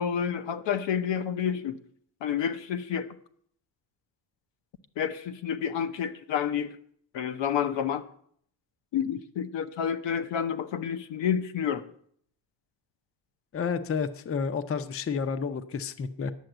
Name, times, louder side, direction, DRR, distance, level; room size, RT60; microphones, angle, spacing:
voice 1, 0.0-1.8 2.2-3.1 5.0-6.8 7.1-8.0 8.9-11.9, left 8 dB, 70° left, 0.9 m, -29 dB
voice 2, 13.5-16.3, left 6 dB, 30° left, 0.6 m, -30 dB
10.5 x 7.1 x 7.8 m
cardioid pair, 135°, 45 cm